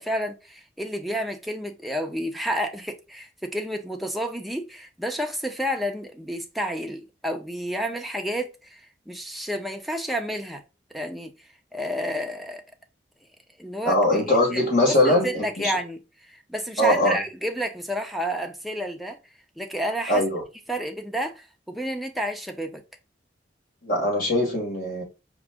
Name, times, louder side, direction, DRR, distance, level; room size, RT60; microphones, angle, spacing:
voice 1, 0.0-10.6 10.9-11.3 11.7-12.6 13.6-19.2 19.6-20.2 20.7-22.8, equal, ahead, 0.8 m, -30 dB
voice 2, 13.9-15.7 16.8-17.2 20.1-20.4 23.8-25.0, left 1 dB, 55° left, 2.4 m, -21 dB
4.9 x 3.0 x 3.6 m
head